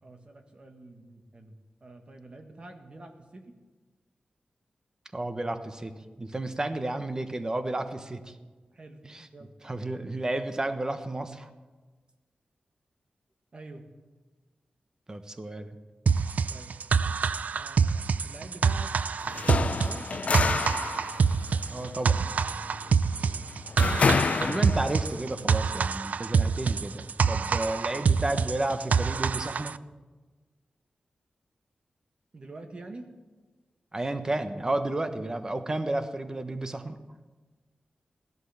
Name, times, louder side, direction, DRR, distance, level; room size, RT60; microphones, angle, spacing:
voice 1, 0.0-3.6 8.7-9.1 9.3-9.6 13.5-13.9 16.5-16.8 17.5-18.9 19.4-20.1 23.1-23.5 23.8-24.2 32.3-33.1, right 2 dB, 40° right, 5 dB, 1.6 m, -47 dB
voice 2, 5.1-8.4 9.0-9.3 9.6-11.5 15.1-15.8 21.7-22.3 24.4-29.8 33.9-37.0, right 2 dB, 25° right, 9 dB, 1.1 m, -32 dB
sound 1, 16.1-29.8, right 5 dB, 70° right, 0.4 m, -26 dB
sound 2, 19.2-25.1, left 5 dB, 55° left, 0.5 m, -29 dB
15.5 x 11.5 x 7.1 m, 1.3 s
wide cardioid pair, 105°, 3 cm